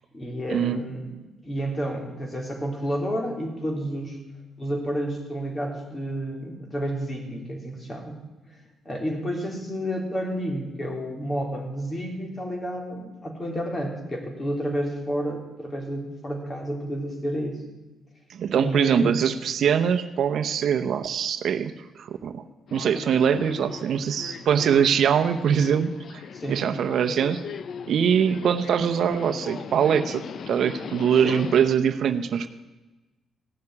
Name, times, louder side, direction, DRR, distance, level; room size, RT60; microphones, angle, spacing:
voice 1, 0.1-1.1 1.4-4.2 4.6-8.2 8.9-17.6 18.5-19.2 26.3-26.7 31.2-31.5, equal, 25° left, 2 dB, 3.5 m, -30 dB
voice 2, 18.3-22.4 22.7-26.2 26.5-27.4 27.9-32.5, right 8 dB, 65° right, 8 dB, 0.8 m, -23 dB
Subway metro underground, 22.7-31.7, left 7 dB, 55° left, 0.5 m, -39 dB
16.0 x 6.6 x 9.7 m, 1.1 s
cardioid pair, 90°, 0 cm